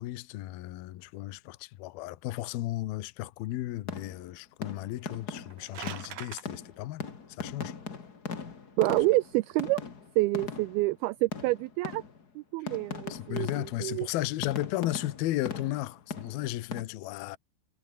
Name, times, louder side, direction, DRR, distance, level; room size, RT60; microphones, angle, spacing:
voice 1, 0.0-7.1 7.4-7.7 13.1-17.4, left 15 dB, 70° left, 2.8 m, -34 dB
sound 1, 3.9-4.3 4.6-10.9 11.3-12.4 12.7-14.0 14.4-16.8, left 5 dB, 30° left, 1.8 m, -40 dB
sound 2, 5.4-6.4, right 11 dB, 60° right, 2.9 m, -42 dB
voice 2, 8.8-9.8 10.2-12.0 12.4-14.1, right 21 dB, 90° right, 2.2 m, -28 dB
omnidirectional pair, 4.9 m